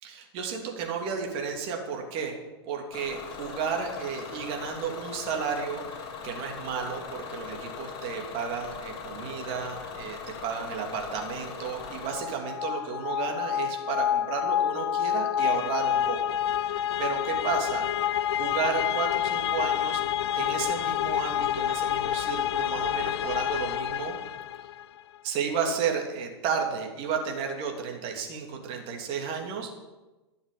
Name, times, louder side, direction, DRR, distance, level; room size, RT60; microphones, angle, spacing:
voice 1, 0.0-2.4 2.7-17.9 18.4-20.0 20.3-24.1 25.2-29.7, right 6 dB, 40° right, 2 dB, 2.9 m, -33 dB
Bus / Engine, 2.9-12.2, left 6 dB, 35° left, 3.8 m, -40 dB
sound 1, 12.0-24.9, left 10 dB, 70° left, 0.5 m, -28 dB
12.0 x 7.2 x 8.4 m, 1.1 s
hypercardioid pair, 115°, 14 cm